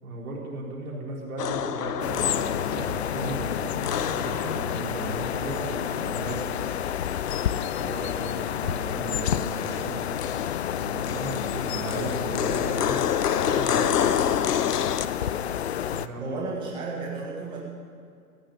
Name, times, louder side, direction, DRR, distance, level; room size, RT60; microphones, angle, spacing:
voice 1, 0.0-6.5 7.8-10.0 10.8-13.0 13.4-14.3 15.9-16.4, right 2 dB, 65° right, -3 dB, 4.4 m, -35 dB
sound 1, 1.4-5.6 6.5-9.0 9.3-15.0, left 9 dB, 90° left, 0.8 m, -30 dB
sound 2, 2.0-16.1, left 10 dB, 45° left, 0.5 m, -30 dB
voice 2, 9.5-9.8 16.2-17.6, right 3 dB, 10° right, -4 dB, 1.4 m, -34 dB
15.5 x 6.5 x 9.9 m, 2.4 s
hypercardioid pair, 150°, 45 cm